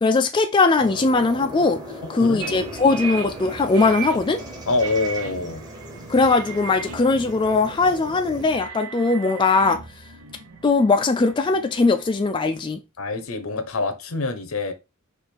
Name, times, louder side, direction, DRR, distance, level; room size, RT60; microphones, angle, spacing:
voice 1, 0.0-1.8 2.1-4.4 6.1-9.8 10.6-12.8, left 3 dB, 20° left, 0.3 m, -20 dB
sound 1, 0.8-8.5, equal, 20° right, 1.0 m, -39 dB
voice 2, 2.1-3.0 4.7-5.6 13.0-14.7, left 3 dB, 75° left, 0.8 m, -26 dB
sound 2, 2.4-12.3, right 5 dB, 90° right, 0.8 m, -38 dB
4.8 x 2.6 x 4.3 m
head